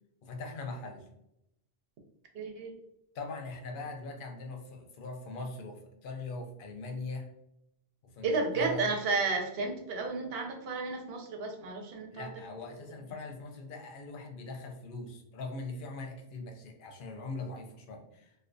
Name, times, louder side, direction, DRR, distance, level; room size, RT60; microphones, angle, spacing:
voice 1, 0.2-1.1 3.1-7.3 8.0-8.9 12.1-18.3, left 3 dB, 60° left, 4 dB, 0.6 m, -41 dB
voice 2, 2.3-2.7 8.2-12.3, right 3 dB, 70° right, 3 dB, 0.8 m, -32 dB
2.3 x 2.2 x 2.5 m, 0.81 s
omnidirectional pair, 1.1 m